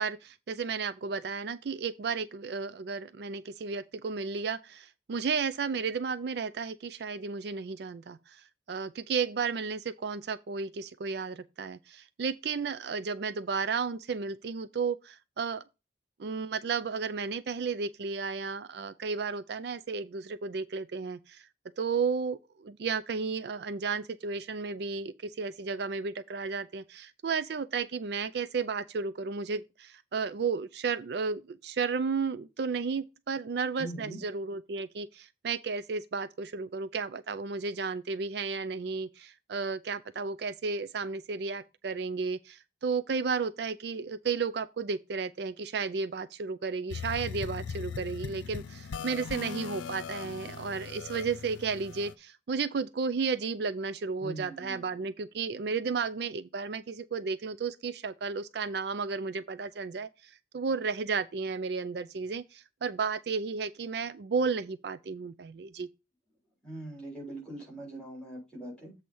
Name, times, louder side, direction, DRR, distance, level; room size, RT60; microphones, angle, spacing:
voice 1, 0.0-15.6 16.2-21.5 21.8-65.9, right 5 dB, 60° right, 0.4 m, -33 dB
voice 2, 33.8-34.2 54.2-54.9 66.6-68.9, right 1 dB, 5° left, 4.2 m, -41 dB
sound 1, 46.9-52.1, left 6 dB, 90° left, 0.5 m, -39 dB
7.8 x 4.2 x 5.3 m
head